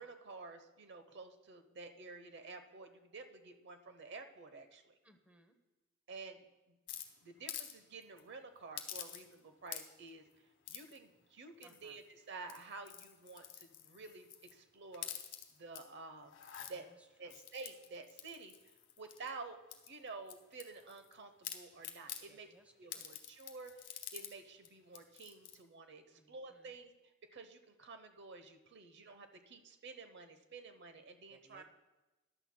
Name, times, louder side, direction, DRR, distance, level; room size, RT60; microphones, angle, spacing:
voice 1, 0.0-5.0 6.1-6.8 7.2-15.1 15.5-16.4 16.7-16.9 17.2-22.5 22.8-26.9 27.2-31.6, right 3 dB, 55° right, 8 dB, 0.8 m, -51 dB
voice 2, 5.0-5.6 11.6-12.0 16.6-17.4 22.3-23.1 26.1-26.7 31.3-31.6, right 1 dB, 5° right, 5 dB, 0.8 m, -66 dB
sound 1, 6.9-7.7 8.0-8.2 8.8-9.4 9.7-10.1 10.7-11.0 11.6-12.0 12.4-14.5 14.9-15.8 16.3-16.7 17.3-19.3 19.7-21.1 21.4-22.2 22.9-24.3 24.6-24.7 24.9-25.6, left 10 dB, 65° left, 1.1 m, -48 dB
14.5 x 11.0 x 2.2 m, 1.1 s
head